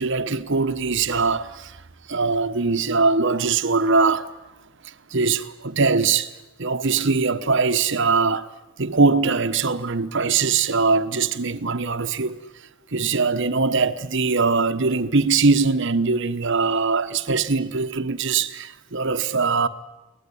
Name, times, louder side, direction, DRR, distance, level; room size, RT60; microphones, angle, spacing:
voice 1, 0.0-1.8 2.1-4.3 5.1-6.3 6.6-8.5 8.8-12.4 12.9-19.7, right 4 dB, 55° right, 1.1 m, -21 dB
24.0 x 18.5 x 9.9 m
head